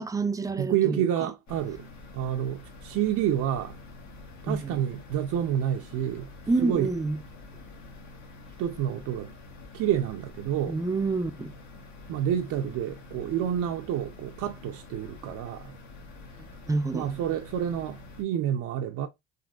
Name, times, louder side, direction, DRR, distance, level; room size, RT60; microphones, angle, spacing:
voice 1, 0.0-1.1 4.5-4.8 6.5-7.2 10.7-11.5 16.7-17.1, right 3 dB, 10° right, 0.3 m, -28 dB
voice 2, 0.6-1.8 2.1-3.8 4.4-6.3 6.6-6.9 8.6-9.3 9.7-10.8 12.1-15.7 16.9-19.1, right 10 dB, 80° right, 0.5 m, -29 dB
sound 1, 1.5-18.2, left 3 dB, 65° left, 1.0 m, -47 dB
3.8 x 2.4 x 2.3 m
cardioid pair, 90°, 30 cm